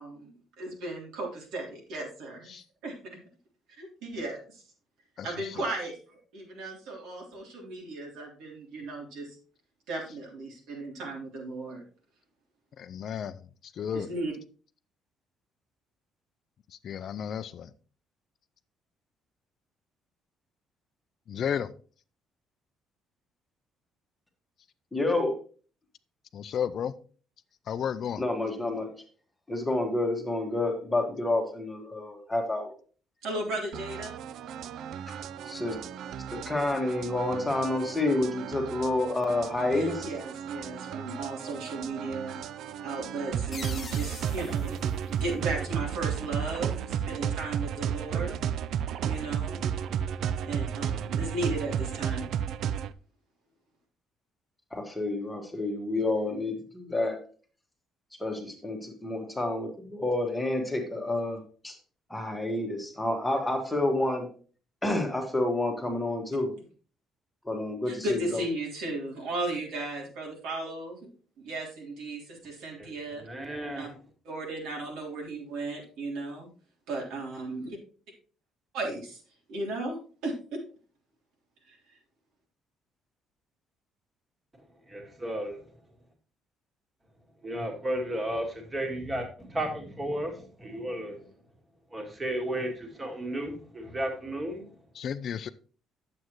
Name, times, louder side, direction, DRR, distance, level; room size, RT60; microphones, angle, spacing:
voice 1, 0.0-2.9 3.8-4.6 5.2-9.3 9.9-11.8 13.9-14.3 33.2-34.1 39.7-42.4 42.8-44.8 45.1-48.3 49.0-49.6 50.4-52.3 67.9-71.1 71.4-73.2 73.8-73.9 74.2-76.5 76.9-77.7 78.7-79.2 79.5-80.6 81.7-81.8, right 2 dB, 90° right, 3.4 m, -35 dB
voice 2, 5.2-5.7 12.8-13.4 13.8-14.1 16.8-17.7 21.3-21.7 26.3-26.9 27.7-28.2 95.0-95.5, left 8 dB, 45° left, 0.4 m, -33 dB
voice 3, 24.9-25.3 28.2-28.9 29.5-32.7 35.4-35.8 36.3-40.1 54.7-57.2 58.2-61.7 62.1-64.3 64.8-66.5 67.4-68.4, left 2 dB, 5° left, 1.5 m, -29 dB
sound 1, 33.7-52.9, right 9 dB, 60° right, 0.4 m, -33 dB
sound 2, 43.5-46.1, left 5 dB, 25° left, 1.1 m, -45 dB
voice 4, 72.8-73.9 84.9-85.5 87.4-91.3 91.9-94.7, right 1 dB, 15° right, 1.8 m, -34 dB
9.4 x 7.6 x 3.1 m
cardioid pair, 165°, 0 cm